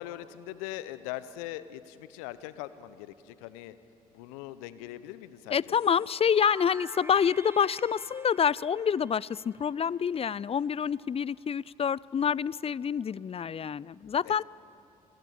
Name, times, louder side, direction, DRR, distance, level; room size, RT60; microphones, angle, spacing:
voice 1, 0.0-3.7 4.1-5.8 14.2-14.4, left 14 dB, 80° left, 15 dB, 0.9 m, -41 dB
voice 2, 5.5-14.4, left 7 dB, 30° left, 24 dB, 0.5 m, -27 dB
sound 1, 5.7-10.4, right 2 dB, 15° right, 0.7 m, -50 dB
26.5 x 17.0 x 8.6 m, 2.5 s
hypercardioid pair, 45°, 18 cm